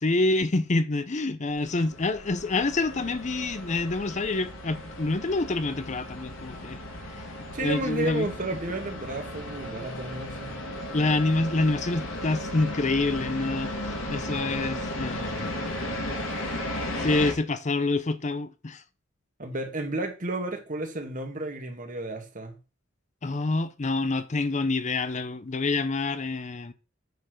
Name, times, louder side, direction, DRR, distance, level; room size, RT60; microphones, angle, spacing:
voice 1, 0.0-6.8 7.1-7.2 7.6-8.3 10.9-15.5 17.0-18.8 23.2-26.7, left 2 dB, 35° left, 0.6 m, -27 dB
sound 1, 1.5-17.3, left 1 dB, 75° left, 2.7 m, -35 dB
voice 2, 7.5-10.6 19.4-22.5, right 2 dB, 40° right, 2.1 m, -32 dB
9.2 x 4.5 x 6.4 m
head